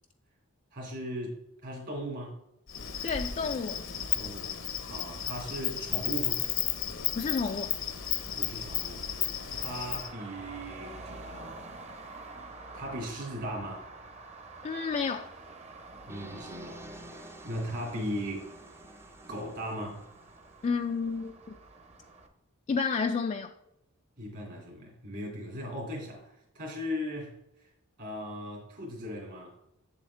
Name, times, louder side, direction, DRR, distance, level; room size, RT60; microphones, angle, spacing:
voice 1, 0.7-1.4 1.6-2.4 4.1-6.4 8.4-9.0 9.5-11.6 12.7-13.9 16.1-18.5 19.3-20.0 24.2-27.7 28.0-29.5, equal, 55° right, 2.4 m, -38 dB
Insect, 2.7-10.1, left 10 dB, 65° left, 0.8 m, -33 dB
voice 2, 3.0-3.9 7.2-7.7 14.6-15.3 20.6-21.6 22.7-23.5, left 5 dB, 35° left, 0.3 m, -30 dB
Traffic noise roadway noise, 7.3-22.3, right 3 dB, 30° right, 0.9 m, -48 dB
sound 1, 16.1-21.0, right 1 dB, 10° right, 0.6 m, -50 dB
7.7 x 7.1 x 3.3 m
head